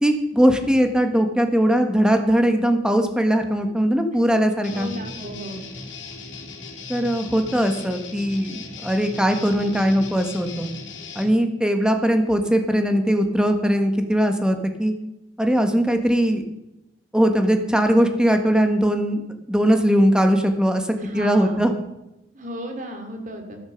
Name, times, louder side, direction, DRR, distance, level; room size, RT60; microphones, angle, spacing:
voice 1, 0.0-4.9 6.9-10.7 11.1-14.9 15.4-16.4 17.1-19.2 19.5-20.8 21.1-21.7, equal, 5° right, 5 dB, 1.6 m, -20 dB
Guitar, 4.6-11.3, left 3 dB, 80° left, 2.9 m, -38 dB
voice 2, 4.7-5.6 21.0-21.7 22.3-23.6, equal, 45° right, 4 dB, 3.1 m, -34 dB
13.5 x 13.0 x 5.4 m, 0.92 s
head